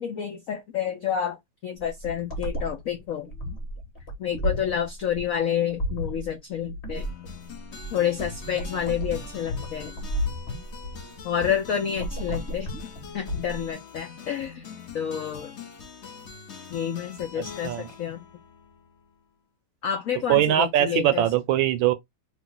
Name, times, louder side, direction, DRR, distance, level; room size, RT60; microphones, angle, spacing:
voice 1, 0.0-1.4 1.6-3.3 4.2-7.1 7.9-9.9 11.2-12.7 13.1-14.6 14.9-15.5 16.7-18.2 19.8-21.2, left 9 dB, 80° left, 0.7 m, -29 dB
sound 1, 1.8-13.7, equal, 30° left, 1.8 m, -33 dB
sound 2, 6.9-19.2, left 6 dB, 50° left, 0.9 m, -44 dB
voice 2, 20.3-21.9, right 12 dB, 80° right, 1.3 m, -21 dB
3.6 x 2.5 x 3.8 m
omnidirectional pair, 2.2 m